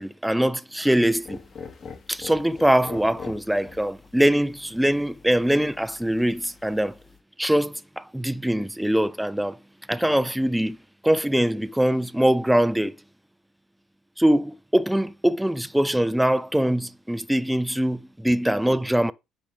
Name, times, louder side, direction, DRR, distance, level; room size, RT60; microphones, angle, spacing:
voice 1, 0.0-1.4 2.1-7.0 7.4-9.6 9.9-10.8 11.0-12.9 14.2-19.1, right 1 dB, 5° right, 0.6 m, -22 dB
sound 1, 0.9-7.2, left 6 dB, 45° left, 2.4 m, -44 dB
10.0 x 5.0 x 3.6 m
hypercardioid pair, 50°, 0 cm